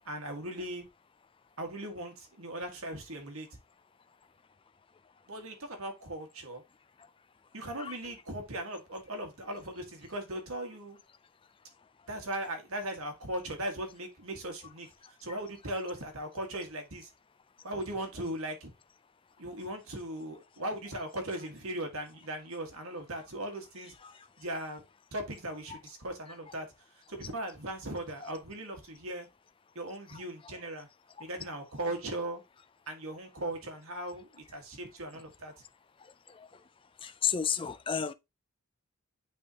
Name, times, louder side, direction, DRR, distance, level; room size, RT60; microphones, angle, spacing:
voice 1, 0.1-0.8 1.6-3.5 5.3-6.6 7.5-11.0 12.1-14.9 15.2-17.1 17.6-18.7 19.4-23.9 24.4-24.8 25.1-26.7 27.1-29.3 29.8-30.9 31.2-32.4 32.9-35.5, right 1 dB, 70° right, 1.7 m, -38 dB
voice 2, 37.0-38.1, left 7 dB, 25° left, 0.3 m, -32 dB
9.1 x 3.6 x 2.8 m
head